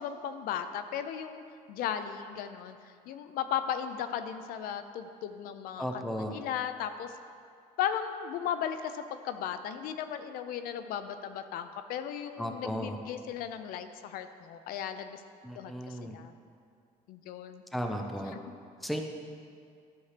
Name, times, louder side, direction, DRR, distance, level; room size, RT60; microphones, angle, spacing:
voice 1, 0.0-1.4 1.7-7.1 7.8-15.2 15.6-16.3 17.1-17.6, left 9 dB, 70° left, 10 dB, 0.5 m, -36 dB
voice 2, 5.8-6.3 12.4-13.0 15.4-16.2 17.7-18.3 18.8-19.2, equal, ahead, 3 dB, 0.5 m, -35 dB
12.5 x 7.1 x 3.3 m, 2.3 s
cardioid pair, 150°, 15 cm